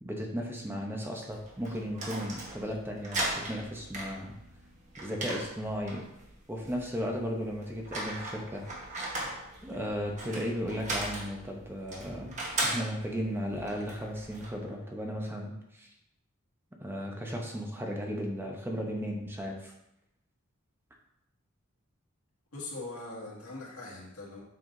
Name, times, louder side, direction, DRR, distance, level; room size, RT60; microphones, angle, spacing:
voice 1, 0.0-4.3 5.0-6.0 6.5-8.6 9.6-15.9 16.8-19.7, equal, 10° right, 0 dB, 0.8 m, -35 dB
sound 1, 1.3-14.5, right 2 dB, 35° right, 1.3 m, -38 dB
voice 2, 22.5-24.4, left 2 dB, 90° left, -5 dB, 2.1 m, -41 dB
7.6 x 5.6 x 2.7 m, 0.82 s
head